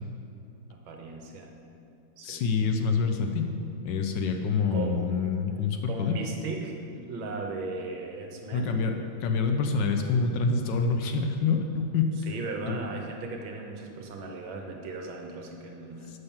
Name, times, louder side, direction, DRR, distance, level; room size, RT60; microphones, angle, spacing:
voice 1, 0.7-1.5 2.2-2.5 4.7-5.1 5.8-8.7 12.2-16.1, right 3 dB, 75° right, 2 dB, 1.7 m, -37 dB
voice 2, 2.2-3.5 3.8-6.2 8.5-8.9 9.2-12.1 12.7-12.8, left 5 dB, 75° left, 5 dB, 1.2 m, -26 dB
6.5 x 5.8 x 7.1 m, 2.6 s
omnidirectional pair, 2.2 m